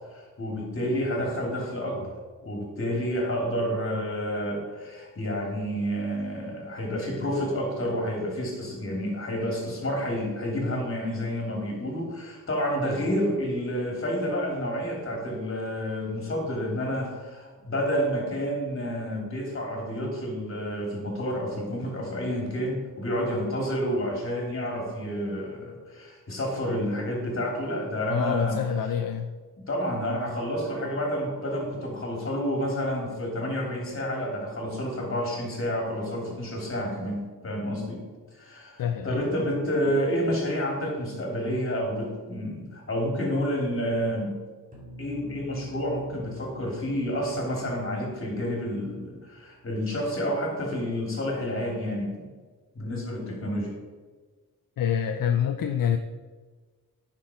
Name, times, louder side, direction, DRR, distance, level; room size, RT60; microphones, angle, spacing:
voice 1, 0.1-2.1 2.4-28.6 29.6-38.1 38.3-44.4 45.0-52.3 52.7-53.7, equal, 35° left, -1 dB, 3.1 m, -29 dB
voice 2, 28.1-29.3 38.8-39.2 54.8-56.0, left 8 dB, 65° left, 6 dB, 0.6 m, -26 dB
sound 1, 44.7-49.6, right 2 dB, 20° right, 2.7 m, -47 dB
10.5 x 6.1 x 5.1 m, 1.4 s
wide cardioid pair, 105°, 36 cm